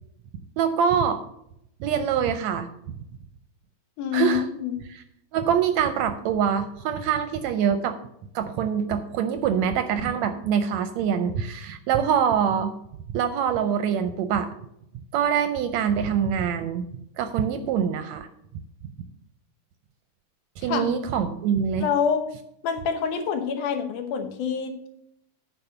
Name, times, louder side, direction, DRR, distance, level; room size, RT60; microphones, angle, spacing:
voice 1, 0.6-1.2 1.8-2.7 4.1-4.4 5.3-8.0 8.4-12.7 13.1-14.5 15.1-16.9 17.2-18.3 20.6-21.9, right 8 dB, 75° right, 9 dB, 1.7 m, -24 dB
voice 2, 4.0-4.7 20.6-20.9 21.8-22.3 22.6-24.9, left 7 dB, 85° left, 7 dB, 2.6 m, -26 dB
9.8 x 4.6 x 6.7 m, 0.75 s
omnidirectional pair, 3.5 m